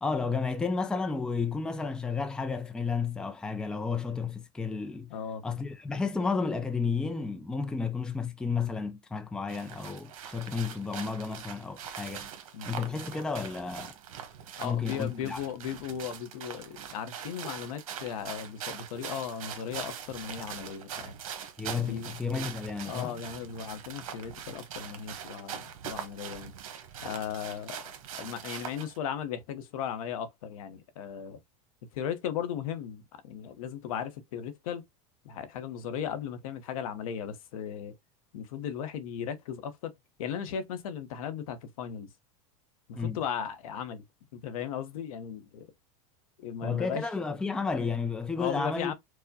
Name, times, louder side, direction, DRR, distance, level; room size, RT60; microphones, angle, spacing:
voice 1, 0.0-5.1 5.4-12.3 12.7-13.9 14.6-15.4 21.6-23.1 42.9-43.2 46.6-48.9, left 5 dB, 5° left, 0.4 m, -32 dB
voice 2, 5.1-5.4 12.5-12.8 14.6-21.2 21.8-22.1 22.9-26.5 27.0-31.4 31.9-34.8 35.2-37.9 38.3-39.9 40.2-42.1 42.9-44.0 44.3-45.7 46.4-47.1 48.4-48.9, left 8 dB, 85° left, 0.8 m, -37 dB
sound 1, 9.5-29.0, right 8 dB, 85° right, 0.9 m, -42 dB
4.6 x 2.1 x 2.6 m
supercardioid pair, 135°, 17 cm